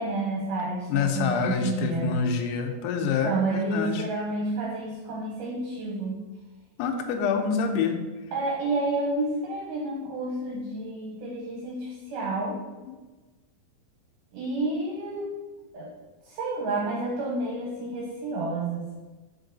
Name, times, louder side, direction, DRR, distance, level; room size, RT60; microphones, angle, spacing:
voice 1, 0.0-2.1 3.0-6.2 8.3-12.6 14.3-15.3 15.7-15.9 16.3-18.9, right 2 dB, 70° right, -3 dB, 2.1 m, -30 dB
voice 2, 0.9-4.0 6.8-8.0, left 6 dB, 90° left, 4 dB, 1.8 m, -27 dB
5.3 x 4.6 x 3.8 m, 1.2 s
omnidirectional pair, 4.4 m